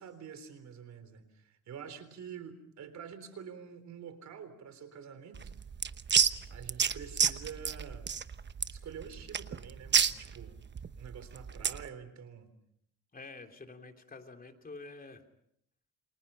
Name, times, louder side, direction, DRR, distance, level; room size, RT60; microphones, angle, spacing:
voice 1, 0.0-5.5 6.5-8.1 8.7-10.6 11.0-12.5, right 7 dB, 65° right, 12 dB, 3.8 m, -47 dB
sound 1, 5.3-11.9, right 6 dB, 35° right, 1.1 m, -30 dB
voice 2, 13.1-15.2, left 3 dB, 30° left, 5 dB, 3.2 m, -48 dB
29.5 x 26.5 x 5.6 m, 0.72 s
cardioid pair, 90°, 30 cm